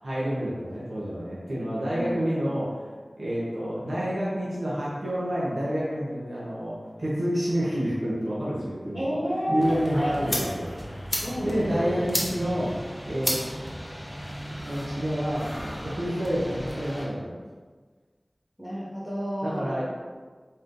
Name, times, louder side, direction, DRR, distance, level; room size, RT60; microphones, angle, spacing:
voice 1, 0.0-2.8 3.2-9.0 9.5-10.7 11.4-12.7 13.0-13.4 14.6-15.5 15.8-17.3 19.4-19.8, equal, 85° right, -7 dB, 0.8 m, -28 dB
voice 2, 1.9-2.3 8.9-10.4 11.2-11.9 18.6-19.8, equal, 10° right, -7 dB, 1.0 m, -30 dB
sound 1, 9.6-17.1, equal, 15° left, 1.0 m, -34 dB
4.1 x 2.5 x 3.7 m, 1.4 s
wide cardioid pair, 55°, 0 cm